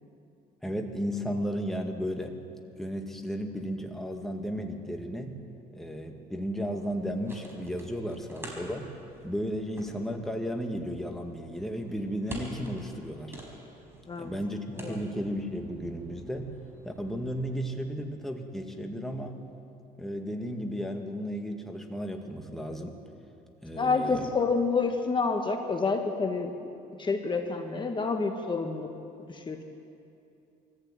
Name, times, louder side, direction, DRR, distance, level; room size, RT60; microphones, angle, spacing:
voice 1, 0.6-2.4 2.8-5.4 5.7-8.9 9.2-13.3 14.2-16.5 16.8-19.4 20.0-23.0 23.6-24.3, equal, ahead, 2 dB, 1.9 m, -34 dB
sound 1, 6.8-17.7, right 1 dB, 15° right, 4.8 m, -47 dB
voice 2, 23.7-26.5 27.0-28.9 29.3-29.6, left 4 dB, 30° left, 4 dB, 1.7 m, -28 dB
23.0 x 15.0 x 8.9 m, 2.6 s
cardioid pair, 110°, 17 cm